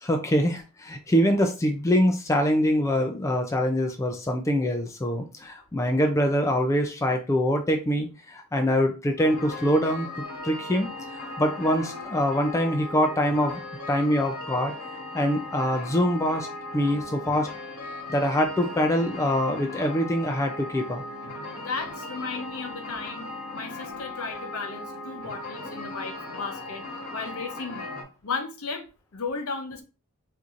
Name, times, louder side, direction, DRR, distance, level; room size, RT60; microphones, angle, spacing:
voice 1, 0.0-10.1 10.4-13.6 13.9-14.7 15.1-16.5 16.7-17.5 18.1-21.0, equal, 15° left, 0.3 m, -24 dB
sound 1, 9.2-28.0, left 2 dB, 85° left, 1.0 m, -38 dB
voice 2, 21.6-26.8 27.1-27.9 28.2-28.8 29.1-29.8, left 4 dB, 65° left, 0.7 m, -35 dB
4.4 x 2.6 x 2.4 m
head